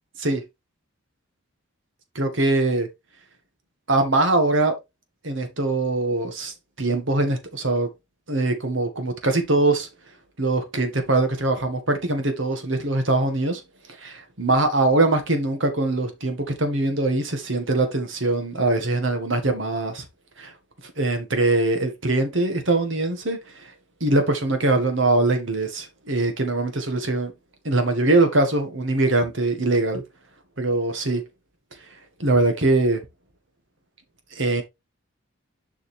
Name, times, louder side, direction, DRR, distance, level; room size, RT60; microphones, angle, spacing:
voice 1, 2.2-2.9 3.9-4.7 5.2-7.9 8.3-9.9 10.4-13.6 14.0-20.1 20.4-20.5 21.0-23.7 24.0-27.3 27.6-30.0 30.6-31.2 32.2-33.0 34.3-34.6, right 2 dB, 60° right, 1.8 m, -22 dB
7.1 x 5.7 x 3.5 m
head